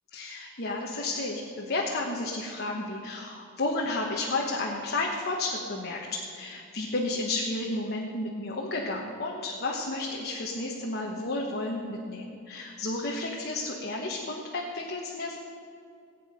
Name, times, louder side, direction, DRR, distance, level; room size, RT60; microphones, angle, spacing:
voice 1, 0.1-15.4, left 2 dB, 50° left, -1 dB, 1.2 m, -32 dB
19.5 x 8.7 x 5.1 m, 2.4 s
head